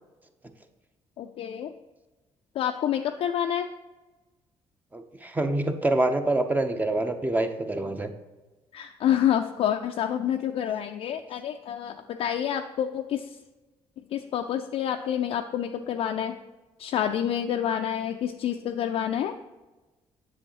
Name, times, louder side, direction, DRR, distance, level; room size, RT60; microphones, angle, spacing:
voice 1, 1.2-1.7 2.6-3.7 8.7-13.4 14.1-16.4 16.8-19.4, left 10 dB, 65° left, 4 dB, 0.4 m, -28 dB
voice 2, 4.9-8.1, right 2 dB, 15° right, 7 dB, 0.8 m, -26 dB
7.8 x 6.3 x 3.0 m, 1.1 s
supercardioid pair, 70°, 11 cm